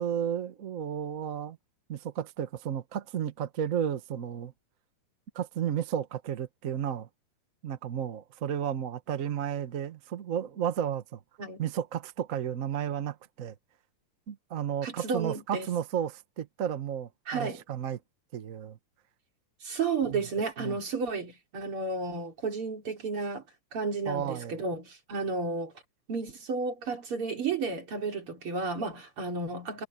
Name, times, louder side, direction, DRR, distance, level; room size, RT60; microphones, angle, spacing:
voice 1, 0.0-1.6 1.9-4.5 5.3-7.1 7.6-11.2 11.6-13.5 14.3-18.0 18.3-18.8 20.1-20.2 20.6-20.8 24.1-24.6, right 9 dB, 75° right, 0.7 m, -33 dB
voice 2, 14.8-15.7 17.3-17.6 19.6-23.4 23.7-25.7 26.1-29.9, right 4 dB, 45° right, 4.2 m, -32 dB
omnidirectional pair, 3.3 m